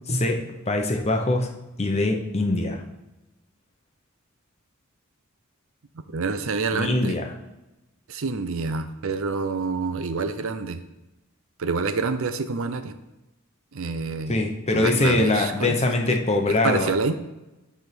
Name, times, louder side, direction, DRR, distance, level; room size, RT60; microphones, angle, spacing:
voice 1, 0.1-0.4 0.7-1.5 1.8-2.8 6.7-7.3 14.3-16.9, left 2 dB, 30° left, 3 dB, 1.0 m, -23 dB
voice 2, 6.1-7.2 8.1-10.8 11.6-12.9 13.7-14.4 14.7-15.8 16.1-16.2 16.5-17.1, right 4 dB, 70° right, 10 dB, 0.6 m, -27 dB
9.7 x 3.6 x 6.0 m, 1.0 s
head